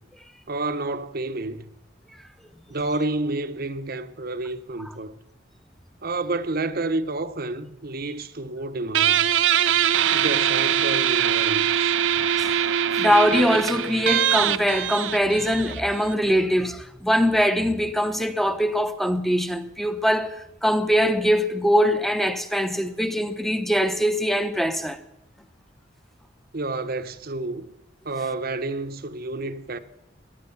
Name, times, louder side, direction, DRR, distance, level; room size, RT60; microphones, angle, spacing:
voice 1, 0.5-1.7 2.7-5.1 6.0-9.3 10.1-12.0 26.5-27.7 28.0-29.8, right 2 dB, 50° right, 1.0 m, -29 dB
Guitar, 8.9-16.1, right 9 dB, 80° right, 0.6 m, -22 dB
voice 2, 12.9-20.4 20.6-25.0, equal, ahead, 0.9 m, -22 dB
18.0 x 11.0 x 7.1 m
head